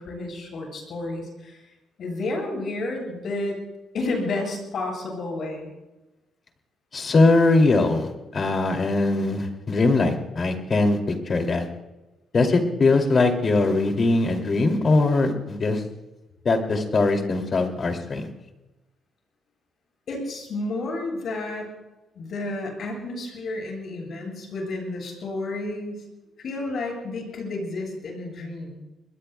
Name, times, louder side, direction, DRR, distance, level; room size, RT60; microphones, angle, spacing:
voice 1, 0.0-1.6 2.0-3.6 3.9-5.7 20.1-21.7 22.1-26.1 26.4-28.8, left 2 dB, 60° left, 0 dB, 7.7 m, -31 dB
voice 2, 6.9-11.7 12.3-15.8 16.4-18.3, left 3 dB, 40° left, 4 dB, 2.6 m, -21 dB
26.5 x 21.0 x 2.3 m, 1.0 s
cardioid pair, 90°, 0 cm